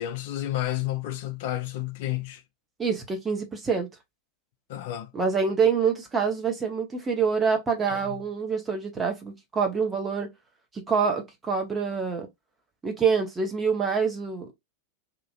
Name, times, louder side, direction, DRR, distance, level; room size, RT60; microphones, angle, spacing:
voice 1, 0.0-2.4 4.7-5.1 7.9-8.2, left 14 dB, 50° left, 0.6 m, -31 dB
voice 2, 2.8-3.9 5.1-10.3 10.7-12.3 12.8-14.5, right 5 dB, 15° right, 0.9 m, -26 dB
2.9 x 2.5 x 2.4 m
figure-of-eight pair, 90°, 0 cm